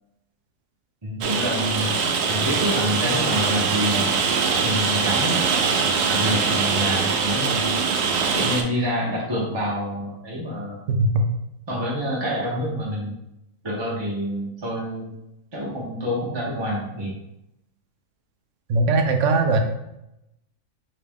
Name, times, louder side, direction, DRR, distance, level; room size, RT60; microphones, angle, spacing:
voice 1, 1.0-1.9 2.3-4.1 4.6-5.5 6.1-7.8 8.3-10.8 11.7-13.1 13.6-15.1 15.5-17.1, equal, 25° right, -5 dB, 0.6 m, -27 dB
Rain, 1.2-8.6, right 5 dB, 85° right, 1.2 m, -22 dB
voice 2, 10.9-11.2 18.7-19.6, right 2 dB, 65° right, 5 dB, 0.8 m, -19 dB
4.9 x 3.0 x 3.5 m, 0.85 s
omnidirectional pair, 1.6 m